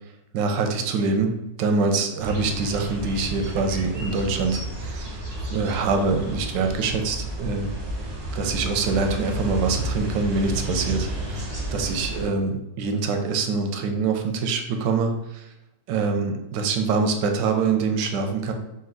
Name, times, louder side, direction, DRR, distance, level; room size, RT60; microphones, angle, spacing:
voice 1, 0.3-1.3 1.6-5.2 5.5-7.7 8.4-15.5 15.9-18.5, right 4 dB, 90° right, 4 dB, 1.3 m, -25 dB
sound 1, 2.2-12.3, right 1 dB, 45° right, 0.7 m, -31 dB
4.2 x 2.5 x 3.8 m, 0.89 s
omnidirectional pair, 1.9 m